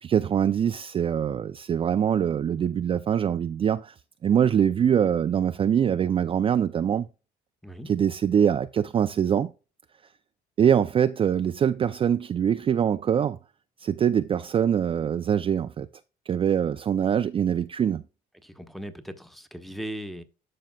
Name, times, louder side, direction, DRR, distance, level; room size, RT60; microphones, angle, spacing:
voice 1, 0.0-3.9 4.2-7.1 7.9-9.5 10.6-13.4 13.8-15.9 16.3-18.0, right 8 dB, 30° right, 0.4 m, -23 dB
voice 2, 18.4-20.2, right 1 dB, ahead, 1.0 m, -38 dB
12.0 x 5.4 x 2.3 m
cardioid pair, 110°, 17 cm